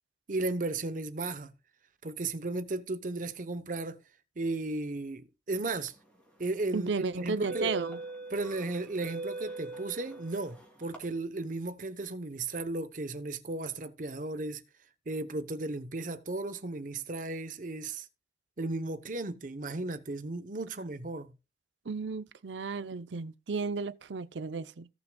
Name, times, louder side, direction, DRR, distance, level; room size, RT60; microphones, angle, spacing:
voice 1, 0.3-1.5 2.0-4.0 4.4-5.9 6.4-7.7 8.3-14.6 15.1-18.1 18.6-21.3, right 2 dB, 45° right, 0.9 m, -35 dB
sound 1, 6.2-6.4 7.2-11.0, right 2 dB, 5° left, 2.9 m, -41 dB
voice 2, 6.7-8.0 21.9-24.9, right 4 dB, 90° right, 0.6 m, -34 dB
17.5 x 6.1 x 2.3 m
head